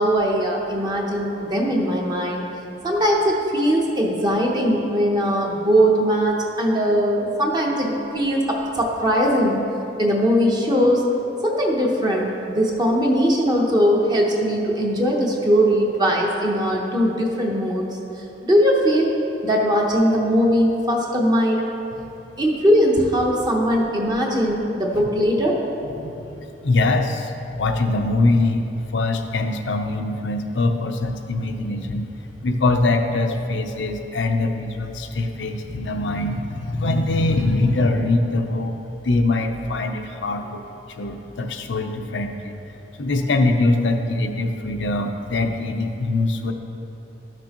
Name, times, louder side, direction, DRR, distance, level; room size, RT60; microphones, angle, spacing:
voice 1, 0.0-2.4 2.8-9.6 10.0-11.1 11.4-17.9 18.4-19.1 19.4-21.6 22.4-25.6, equal, 25° right, -1 dB, 0.8 m, -20 dB
voice 2, 26.0-28.6 28.9-32.1 32.4-38.8 39.0-40.6 40.9-42.6 43.0-46.5, left 2 dB, 85° left, 5 dB, 0.6 m, -23 dB
12.5 x 6.1 x 2.9 m, 2.9 s
head